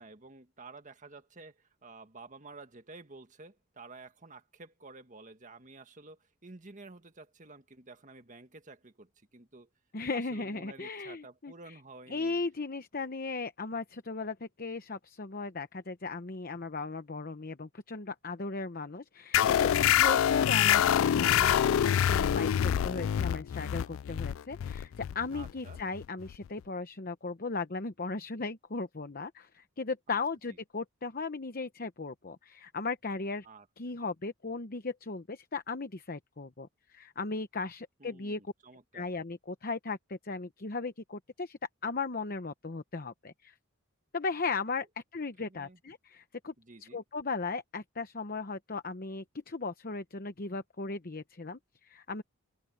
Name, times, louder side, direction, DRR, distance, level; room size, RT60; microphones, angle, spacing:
voice 1, 0.0-9.7 10.1-12.4 19.7-19.8 25.3-25.8 30.1-30.2 30.5-30.6 33.4-33.7 38.0-39.1 45.4-45.8 46.6-47.0, right 3 dB, 35° right, 1.7 m, -51 dB
voice 2, 9.9-11.7 12.1-33.5 33.8-38.4 38.9-43.5 44.1-44.9 45.1-46.5 46.8-52.2, left 4 dB, 45° left, 0.9 m, -37 dB
sound 1, 19.3-26.5, left 10 dB, 70° left, 0.3 m, -26 dB
open air
head